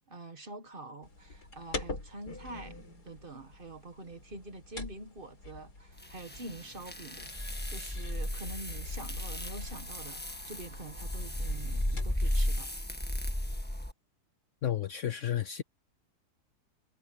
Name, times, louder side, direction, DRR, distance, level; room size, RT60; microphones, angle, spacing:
voice 1, 0.1-2.8 3.0-12.8, right 2 dB, 35° right, 1.6 m, -46 dB
sound 1, 1.0-12.5, left 3 dB, 85° left, 5.3 m, -44 dB
sound 2, 6.0-13.9, left 1 dB, 5° left, 1.5 m, -35 dB
voice 2, 14.6-15.6, left 10 dB, 60° left, 0.9 m, -32 dB
omnidirectional pair, 1.7 m